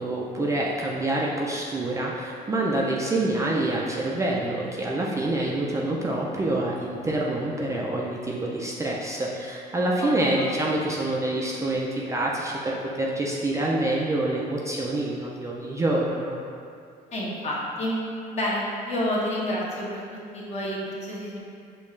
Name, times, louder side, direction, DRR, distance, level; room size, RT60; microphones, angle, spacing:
voice 1, 0.0-16.4, right 2 dB, 20° right, -3 dB, 0.4 m, -26 dB
voice 2, 9.8-10.4 17.1-18.0 18.3-20.0 20.3-21.4, left 1 dB, 40° left, -5 dB, 0.9 m, -29 dB
5.2 x 2.3 x 3.1 m, 2.4 s
cardioid pair, 110°, 17 cm